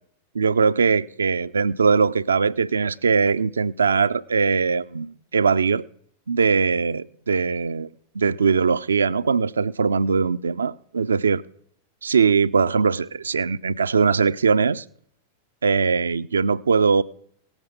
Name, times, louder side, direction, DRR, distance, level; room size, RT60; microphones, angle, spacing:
voice 1, 0.3-5.8 6.3-7.9 8.1-11.4 12.0-14.8 15.6-17.0, right 5 dB, 70° right, 0.4 m, -21 dB
17.5 x 7.3 x 5.2 m
figure-of-eight pair, 90°, 0 cm